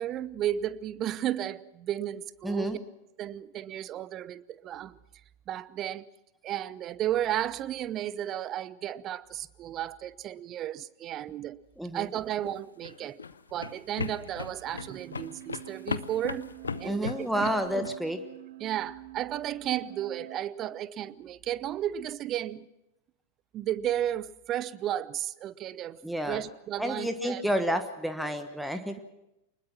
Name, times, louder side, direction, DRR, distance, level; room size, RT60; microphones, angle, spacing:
voice 1, 0.0-2.8 3.2-5.0 5.5-6.1 6.4-11.6 11.9-13.2 13.5-16.5 16.8-17.9 18.6-22.7 23.5-27.4, right 11 dB, 30° right, 19 dB, 0.7 m, -33 dB
voice 2, 2.4-2.8 11.8-12.1 16.8-18.2 26.0-26.4 26.8-29.0, equal, ahead, 8 dB, 1.3 m, -30 dB
sound 1, 12.3-18.0, left 5 dB, 75° left, 0.8 m, -37 dB
sound 2, 14.7-20.4, right 17 dB, 60° right, 1.1 m, -47 dB
25.0 x 20.5 x 6.0 m, 0.92 s
figure-of-eight pair, 90°, 0 cm